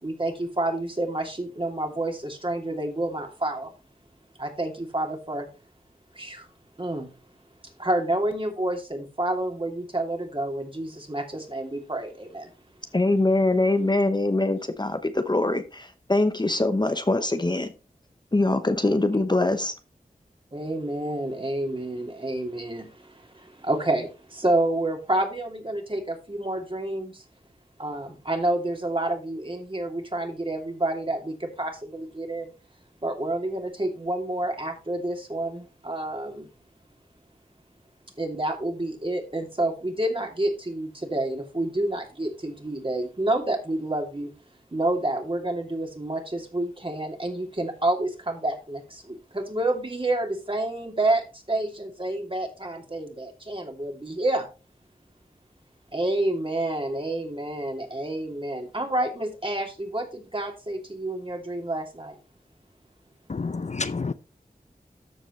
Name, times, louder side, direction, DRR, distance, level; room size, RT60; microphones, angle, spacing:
voice 1, 0.0-3.7 4.4-5.5 6.1-6.5 6.8-7.1 7.8-12.5 20.5-27.2 27.8-32.5 33.0-36.5 38.2-44.3 44.7-54.4 55.9-62.2, right 1 dB, 35° right, 2.8 m, -29 dB
voice 2, 12.9-17.7 18.3-19.7, left 2 dB, 30° left, 0.9 m, -23 dB
voice 3, 63.3-64.1, left 4 dB, 50° left, 0.6 m, -29 dB
13.5 x 5.1 x 3.2 m
wide cardioid pair, 45°, 15 cm